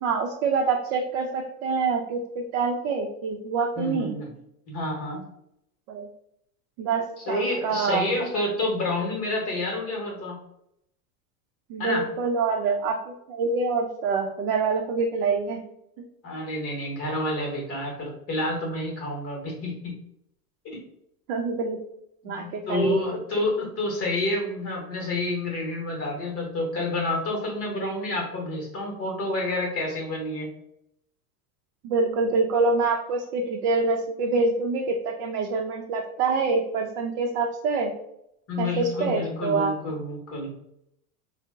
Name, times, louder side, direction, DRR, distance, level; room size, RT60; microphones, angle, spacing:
voice 1, 0.0-4.1 5.9-6.1 6.8-8.1 11.7-15.6 21.3-21.8 22.2-23.0 31.8-37.9 38.6-39.7, right 4 dB, 60° right, 2 dB, 0.5 m, -26 dB
voice 2, 3.8-4.3 4.7-5.2 7.3-10.4 11.8-12.1 16.2-19.9 20.6-20.8 22.2-30.5 38.5-40.5, left 2 dB, 30° left, -1 dB, 0.9 m, -29 dB
2.8 x 2.0 x 3.4 m, 0.77 s
supercardioid pair, 125°, 46 cm